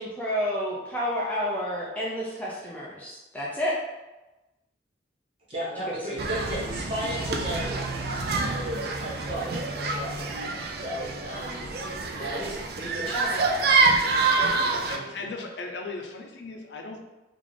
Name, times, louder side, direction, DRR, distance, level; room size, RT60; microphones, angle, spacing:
voice 1, 0.0-3.7 5.9-6.0, equal, 10° left, -6 dB, 0.4 m, -30 dB
voice 2, 5.5-7.8 8.5-11.7 12.1-13.4 14.1-15.0, right 1 dB, 35° right, -7 dB, 1.3 m, -35 dB
sound 1, 6.2-15.0, right 3 dB, 60° right, 0.4 m, -27 dB
voice 3, 14.9-17.0, left 3 dB, 80° left, 2 dB, 0.5 m, -37 dB
3.7 x 2.4 x 3.2 m, 1.1 s
head